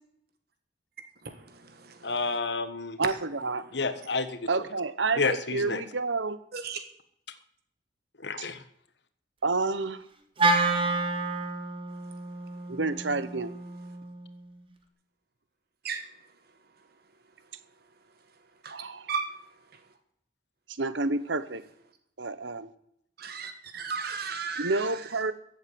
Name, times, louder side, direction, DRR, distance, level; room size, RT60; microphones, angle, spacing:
voice 1, 1.2-2.1 6.5-6.8 15.8-16.0 18.6-18.7 19.1-19.3 23.2-24.9, right 5 dB, 55° right, 8 dB, 1.4 m, -35 dB
voice 2, 2.0-3.0 3.7-4.4 5.2-5.8 8.2-8.6, left 4 dB, 60° left, 11 dB, 1.4 m, -30 dB
voice 3, 3.0-3.6 4.5-6.4 9.4-10.0 12.7-13.5 18.7-19.1 20.8-21.6 22.2-22.7 24.6-25.3, right 3 dB, 75° right, 14 dB, 1.1 m, -29 dB
Wind instrument woodwind instrument, 10.4-14.7, right 3 dB, 30° right, 1.8 m, -29 dB
15.0 x 8.2 x 9.4 m, 0.72 s
head